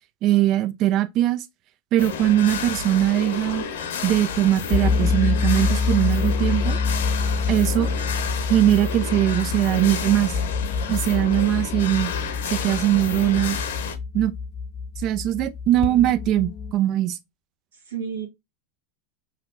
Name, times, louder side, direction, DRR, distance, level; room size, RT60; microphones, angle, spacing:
voice 1, 0.2-1.4 1.9-3.6 4.0-6.8 7.5-7.9 8.5-10.3 10.9-12.1 12.5-13.6 14.1-14.3 15.0-17.2, right 13 dB, 45° right, 0.6 m, -21 dB
sound 1, 2.0-14.0, left 6 dB, 80° left, 0.9 m, -31 dB
sound 2, 4.7-16.7, left 4 dB, 35° left, 0.4 m, -26 dB
voice 2, 9.1-9.7 11.3-11.4 17.7-18.3, right 7 dB, 80° right, 1.4 m, -35 dB
5.7 x 2.3 x 2.5 m
hypercardioid pair, 95°, 0 cm